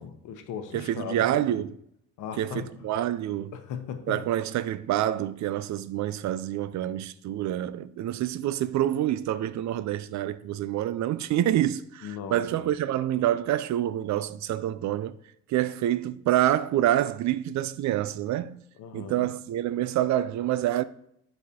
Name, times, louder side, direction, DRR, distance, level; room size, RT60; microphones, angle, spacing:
voice 1, 0.0-1.6 2.2-2.9 3.5-4.3 12.0-12.6 18.8-19.3, left 7 dB, 85° left, 0.9 m, -38 dB
voice 2, 0.7-1.7 2.4-3.5 4.1-15.2 15.5-18.6 18.9-20.8, right 12 dB, 65° right, 0.4 m, -27 dB
9.7 x 4.1 x 2.8 m
cardioid pair, 90°, 30 cm